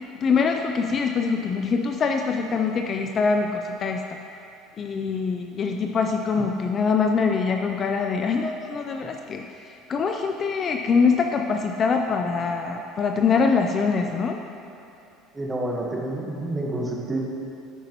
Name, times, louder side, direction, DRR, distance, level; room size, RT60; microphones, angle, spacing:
voice 1, 0.2-4.2 4.8-14.4, left 5 dB, 30° left, 4 dB, 0.4 m, -24 dB
voice 2, 15.3-17.2, right 1 dB, 15° right, -2 dB, 1.3 m, -28 dB
10.0 x 9.8 x 3.0 m, 2.8 s
cardioid pair, 145°, 0 cm